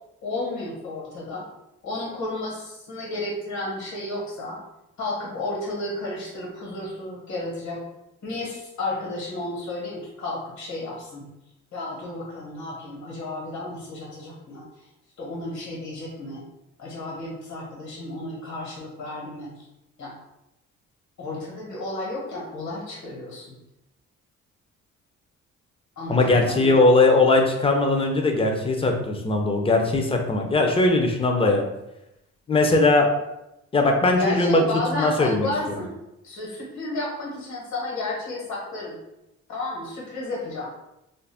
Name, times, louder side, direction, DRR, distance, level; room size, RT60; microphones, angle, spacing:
voice 1, 0.2-1.4 1.8-4.6 5.0-7.8 8.2-11.2 11.7-14.6 15.2-16.4 16.8-19.5 20.0-20.1 21.2-23.5 26.0-26.8 34.1-35.9 36.2-39.0 39.5-40.7, left 2 dB, 70° left, -4 dB, 1.3 m, -32 dB
voice 2, 26.1-31.6 32.5-33.1 33.7-34.6 34.9-35.5, left 2 dB, 20° left, 3 dB, 0.5 m, -20 dB
2.5 x 2.1 x 3.3 m, 0.90 s
cardioid pair, 90°, 30 cm